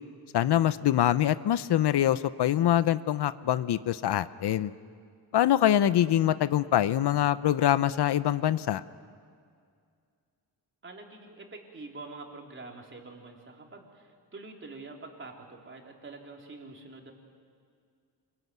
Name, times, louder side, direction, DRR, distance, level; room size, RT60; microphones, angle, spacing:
voice 1, 0.3-4.7 5.3-8.8, left 11 dB, 70° left, 15 dB, 0.8 m, -24 dB
voice 2, 10.8-17.1, right 3 dB, 30° right, 1 dB, 3.7 m, -46 dB
27.0 x 22.0 x 9.4 m, 2.2 s
wide cardioid pair, 145°, 41 cm